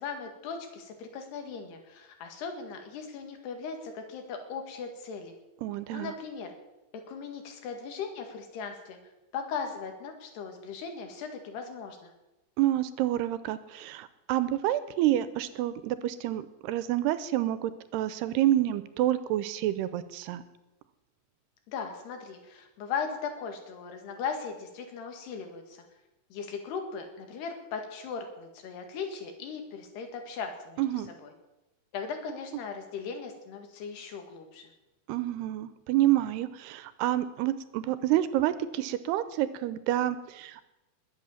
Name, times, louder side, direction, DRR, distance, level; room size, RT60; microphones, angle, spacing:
voice 1, 0.0-5.3 5.9-6.5 7.1-9.0 9.3-12.1 21.7-25.8 26.3-30.8 31.2-31.3 31.9-34.7, left 5 dB, 80° left, 5 dB, 4.1 m, -38 dB
voice 2, 5.6-6.1 12.6-20.4 30.8-31.1 35.1-40.6, right 13 dB, 85° right, 14 dB, 2.8 m, -28 dB
20.5 x 8.5 x 7.2 m, 0.99 s
omnidirectional pair, 4.7 m